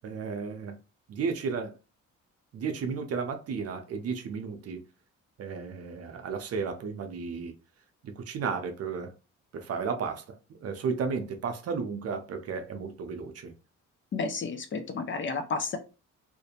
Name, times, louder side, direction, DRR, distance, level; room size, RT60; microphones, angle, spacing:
voice 1, 0.0-0.8 1.1-1.8 2.5-4.8 5.4-7.5 8.0-9.1 9.5-13.5, right 5 dB, 55° right, 0.6 m, -33 dB
voice 2, 14.1-15.8, left 4 dB, 40° left, 0.5 m, -31 dB
2.5 x 2.1 x 2.8 m
cardioid pair, 90°, 30 cm